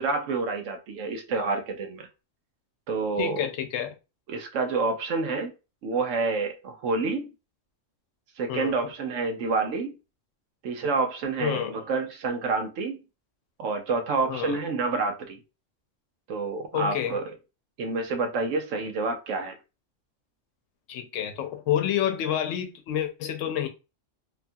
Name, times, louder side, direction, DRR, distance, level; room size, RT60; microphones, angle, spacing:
voice 1, 0.0-2.1 2.9-3.4 4.3-5.5 5.8-7.3 8.4-9.9 10.6-13.0 13.6-15.4 16.3-17.3 17.8-19.5, right 4 dB, 80° right, 1.0 m, -28 dB
voice 2, 3.2-3.9 8.5-8.9 11.4-11.8 14.3-14.6 16.7-17.2 20.9-23.7, left 10 dB, 85° left, 0.9 m, -29 dB
2.9 x 2.3 x 2.5 m
omnidirectional pair, 1.3 m